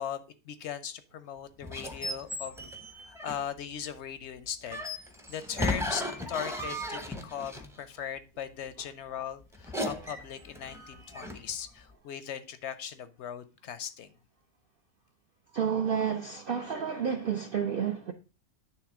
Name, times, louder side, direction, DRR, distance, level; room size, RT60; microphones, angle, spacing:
voice 1, 0.0-2.7 3.0-4.8 5.3-14.1, left 8 dB, 65° left, 0.7 m, -39 dB
sound 1, 1.6-3.6 4.7-7.8 9.5-11.6, left 1 dB, 5° right, 0.4 m, -36 dB
voice 2, 15.5-18.1, right 7 dB, 70° right, 0.5 m, -30 dB
9.4 x 3.3 x 4.7 m
omnidirectional pair, 1.6 m